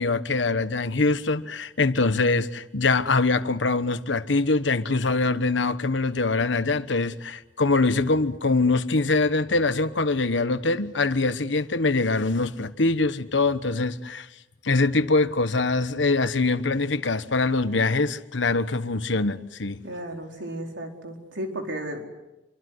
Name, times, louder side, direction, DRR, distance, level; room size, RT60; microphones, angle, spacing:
voice 1, 0.0-14.3 14.6-19.8, left 3 dB, 85° left, 1.2 m, -23 dB
voice 2, 19.8-22.1, right 1 dB, 90° right, 4.5 m, -34 dB
27.0 x 25.0 x 8.0 m
head